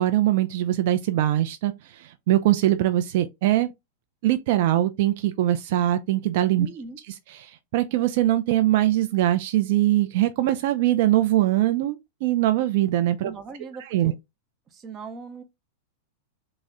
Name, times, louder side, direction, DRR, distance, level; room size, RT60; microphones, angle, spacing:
voice 1, 0.0-3.7 4.2-6.7 7.0-13.3 13.8-14.1, right 14 dB, 60° right, 0.3 m, -22 dB
voice 2, 6.6-7.0 13.2-14.1 14.7-15.4, right 4 dB, 30° right, 0.7 m, -39 dB
3.7 x 2.0 x 3.4 m
hypercardioid pair, 120°, 0 cm